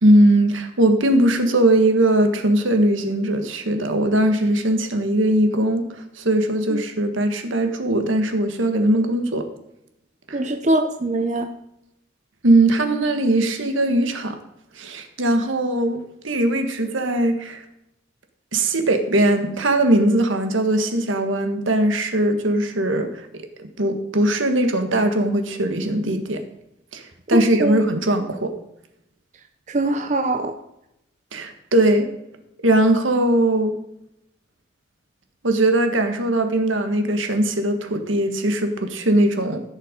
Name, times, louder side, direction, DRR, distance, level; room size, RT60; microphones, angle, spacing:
voice 1, 0.0-9.5 10.3-10.4 12.4-14.4 14.8-17.6 18.5-23.1 23.8-26.4 26.9-27.0 27.3-28.5 31.3-32.1 32.6-33.7 35.4-39.6, right 1 dB, 80° right, 6 dB, 1.5 m, -20 dB
voice 2, 10.3-11.4 27.3-27.8 29.7-30.5, right 1 dB, 35° right, 5 dB, 0.7 m, -22 dB
15.0 x 6.7 x 5.1 m, 0.83 s
head